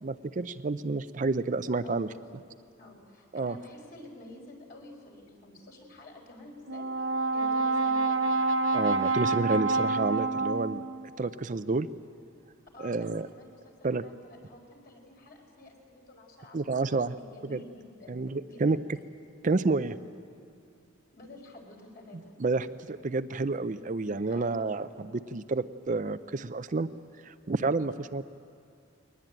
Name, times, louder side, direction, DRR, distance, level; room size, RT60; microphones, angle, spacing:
voice 1, 0.0-2.1 3.3-3.6 8.7-10.8 11.2-11.9 12.8-13.3 13.8-14.0 16.5-17.1 17.5-17.6 18.1-18.8 19.4-20.0 22.1-26.9 27.2-28.3, right 3 dB, 40° right, 12 dB, 0.5 m, -29 dB
voice 2, 2.8-8.3 12.7-16.8 17.2-18.8 21.1-22.3 24.3-24.6, left 1 dB, 50° left, 1 dB, 4.6 m, -50 dB
Brass instrument, 6.7-11.1, right 3 dB, 80° right, 1.1 m, -27 dB
21.5 x 20.0 x 9.0 m, 2.5 s
head